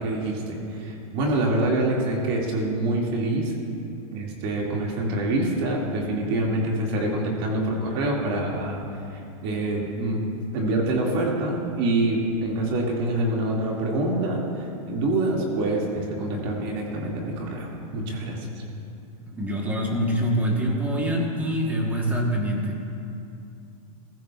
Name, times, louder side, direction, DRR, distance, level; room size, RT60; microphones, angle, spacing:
voice 1, 0.0-3.5 4.1-8.8 9.4-10.2 10.5-18.5, right 2 dB, 40° right, -2 dB, 2.1 m, -26 dB
voice 2, 19.2-22.8, equal, 10° right, 0 dB, 1.1 m, -25 dB
20.0 x 14.5 x 2.4 m, 2.7 s
supercardioid pair, 175°, 19 cm